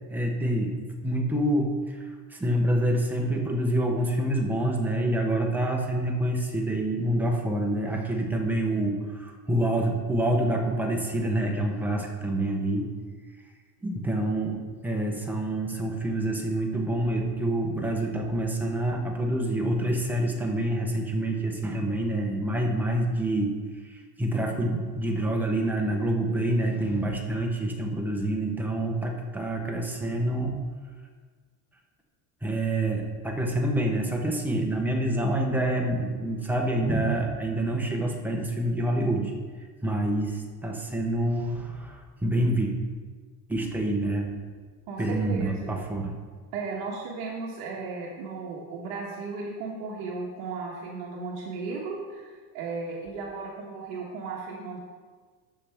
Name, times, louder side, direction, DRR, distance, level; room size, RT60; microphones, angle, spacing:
voice 1, 0.1-2.0 2.3-12.9 13.8-14.6 14.8-23.5 23.8-30.6 32.4-39.3 39.8-42.7 43.5-44.3 45.0-46.2, right 1 dB, 5° right, 0 dB, 0.7 m, -27 dB
voice 2, 44.9-45.7 46.5-54.8, right 4 dB, 60° right, -2 dB, 1.4 m, -35 dB
13.5 x 5.7 x 3.4 m, 1.5 s
cardioid pair, 160°, 47 cm